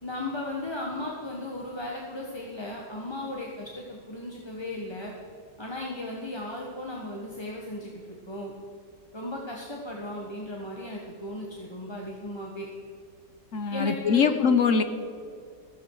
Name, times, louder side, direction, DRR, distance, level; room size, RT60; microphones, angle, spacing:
voice 1, 0.0-5.1 5.6-8.5 9.1-12.7 13.7-14.3, left 1 dB, 15° left, -2 dB, 1.4 m, -36 dB
voice 2, 13.5-14.8, left 6 dB, 50° left, 9 dB, 1.1 m, -22 dB
15.5 x 15.0 x 4.8 m, 2.3 s
omnidirectional pair, 1.9 m